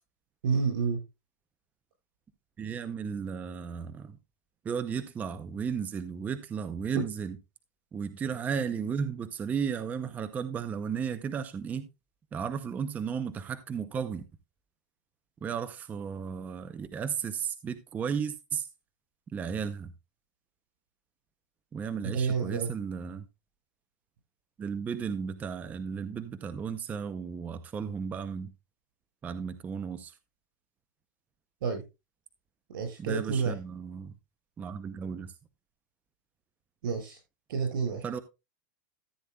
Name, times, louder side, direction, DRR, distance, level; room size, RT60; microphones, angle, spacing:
voice 1, 0.4-1.0 6.9-7.0 22.0-22.7 31.6-31.8 32.7-33.5 36.8-37.2 37.5-38.1, right 5 dB, 80° right, 7.7 m, -29 dB
voice 2, 2.6-4.2 4.6-7.4 7.9-11.9 12.3-14.2 15.4-18.7 19.3-19.9 21.7-23.3 24.6-28.5 29.2-30.1 33.0-34.1 34.6-35.3 38.0-38.2, right 7 dB, 15° right, 0.5 m, -34 dB
14.0 x 9.1 x 2.2 m
supercardioid pair, 160°, 11 cm